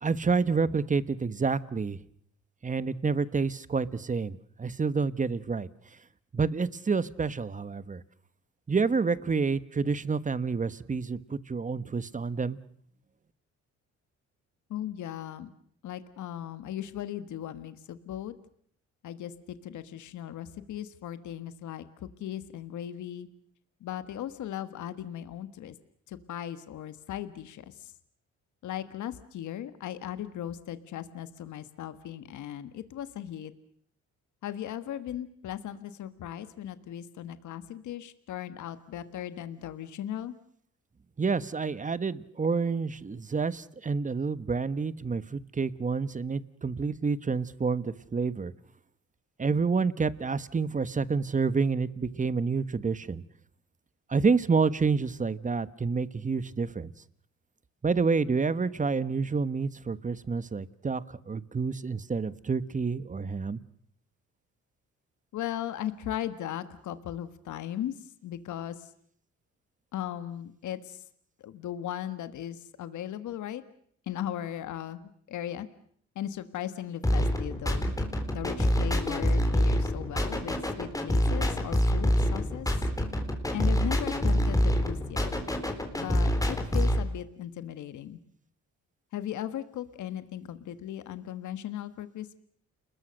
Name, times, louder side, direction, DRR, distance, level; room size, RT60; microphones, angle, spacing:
voice 1, 0.0-2.0 2.6-5.7 6.3-8.0 8.7-12.6 41.2-48.5 49.4-53.2 54.1-56.9 57.8-63.6, right 4 dB, 25° right, 16 dB, 1.2 m, -28 dB
voice 2, 14.7-15.5 15.8-18.3 19.0-23.3 23.8-25.7 26.1-27.9 28.6-33.5 34.4-40.3 65.3-67.9 68.2-68.9 69.9-71.0 71.4-73.6 74.1-75.0 75.3-75.7 76.1-77.9 78.3-82.7 83.5-85.3 85.9-88.2 89.1-92.4, left 11 dB, 75° left, 12 dB, 1.6 m, -37 dB
sound 1, 77.0-87.0, equal, 10° left, 4.0 m, -26 dB
30.0 x 21.0 x 6.5 m, 0.64 s
cardioid pair, 90°, 30 cm